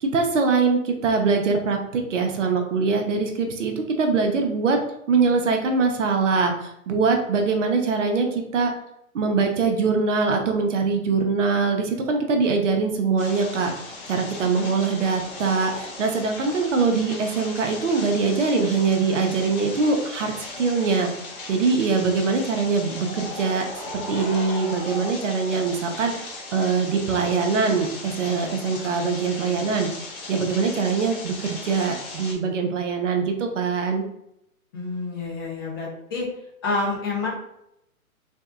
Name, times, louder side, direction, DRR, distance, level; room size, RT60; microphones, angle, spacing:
voice 1, 0.0-4.8 5.1-8.7 9.1-13.7 14.1-21.1 21.5-23.6 23.9-26.1 26.5-29.9 30.3-34.0, right 4 dB, 55° right, 4 dB, 0.7 m, -23 dB
sound 1, 13.2-32.4, left 2 dB, 40° left, 0.9 m, -37 dB
voice 2, 14.3-14.7 34.7-36.3 36.6-37.3, left 3 dB, 15° left, -4 dB, 0.4 m, -28 dB
3.3 x 2.6 x 2.4 m, 0.79 s
hypercardioid pair, 130°, 43 cm